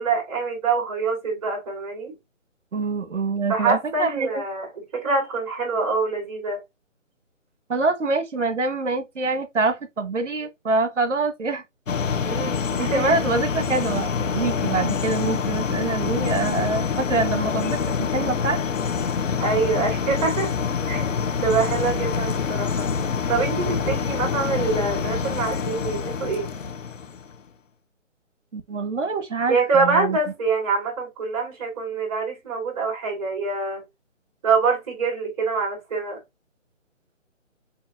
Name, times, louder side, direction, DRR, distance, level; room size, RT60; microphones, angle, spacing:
voice 1, 0.0-2.1 3.5-6.6 12.2-13.2 19.4-20.5 20.9-21.0 21.4-22.9 23.3-26.5 29.5-33.8 34.4-36.2, right 4 dB, 30° right, 3.2 m, -25 dB
voice 2, 2.7-4.4 7.7-11.6 12.8-18.6 28.5-30.2, right 3 dB, 65° right, 1.3 m, -25 dB
sound 1, 11.9-27.4, left 6 dB, 75° left, 0.8 m, -26 dB
7.4 x 2.7 x 2.3 m
figure-of-eight pair, 155°, 39 cm